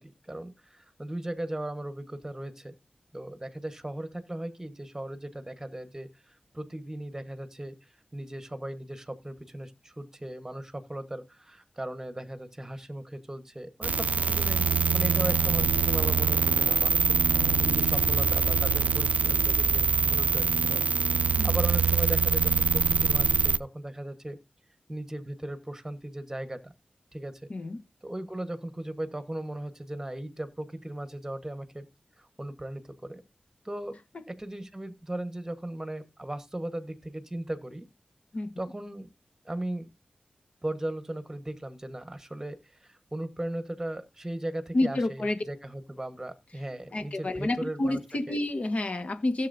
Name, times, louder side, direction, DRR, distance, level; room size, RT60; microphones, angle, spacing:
voice 1, 0.0-2.7 3.1-14.7 14.9-20.8 21.2-24.4 24.9-26.7 27.1-27.4 28.0-31.9 32.2-33.2 33.6-34.0 34.3-37.9 38.6-39.1 39.4-39.9 40.6-48.0 48.3-48.4, right 1 dB, 15° right, 1.3 m, -37 dB
sound 1, 13.8-23.6, right 5 dB, 60° right, 0.4 m, -24 dB
sound 2, 17.4-19.8, equal, 70° left, 2.5 m, -38 dB
voice 2, 44.7-45.4 46.9-49.5, left 2 dB, 50° left, 1.5 m, -29 dB
16.5 x 7.6 x 2.7 m
wide cardioid pair, 115°, 3 cm